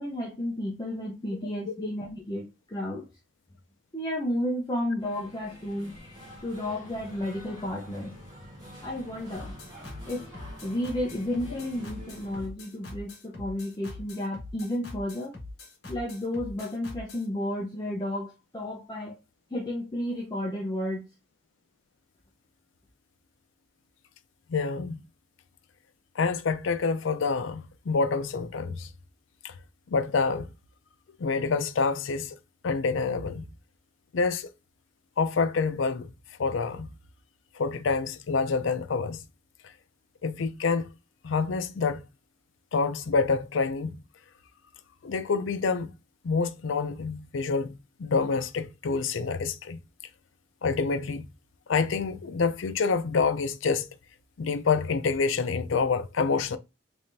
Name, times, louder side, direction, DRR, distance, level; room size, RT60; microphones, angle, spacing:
voice 1, 0.0-3.1 3.9-5.9 6.4-8.1 8.8-9.5 10.1-10.3 10.6-15.3 15.9-19.2 19.5-21.1, left 1 dB, 20° left, 0.6 m, -32 dB
sound 1, 5.0-12.5, equal, 20° right, 1.4 m, -47 dB
sound 2, 9.3-17.3, left 2 dB, 55° left, 1.8 m, -43 dB
voice 2, 24.5-25.0 26.2-28.9 29.4-29.5 29.9-30.5 31.2-32.4 32.6-33.5 34.1-34.5 35.2-36.1 36.4-36.9 37.6-39.2 40.2-40.9 41.2-42.0 42.7-44.0 45.0-45.9 46.2-49.8 50.6-51.2 51.7-53.9 54.4-56.6, left 4 dB, 75° left, 0.5 m, -27 dB
3.5 x 3.3 x 2.6 m
head